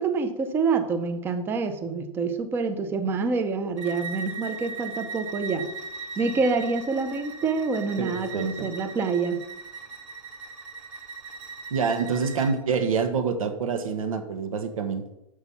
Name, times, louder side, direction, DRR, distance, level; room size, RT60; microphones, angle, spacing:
voice 1, 0.0-5.7 6.2-9.4, right 4 dB, 15° right, 8 dB, 0.6 m, -27 dB
Bowed string instrument, 3.8-12.6, right 4 dB, 65° right, 1.7 m, -39 dB
voice 2, 8.0-8.7 11.7-15.0, right 5 dB, 85° right, 7 dB, 1.4 m, -27 dB
6.9 x 6.2 x 5.6 m, 0.87 s
hypercardioid pair, 155°, 17 cm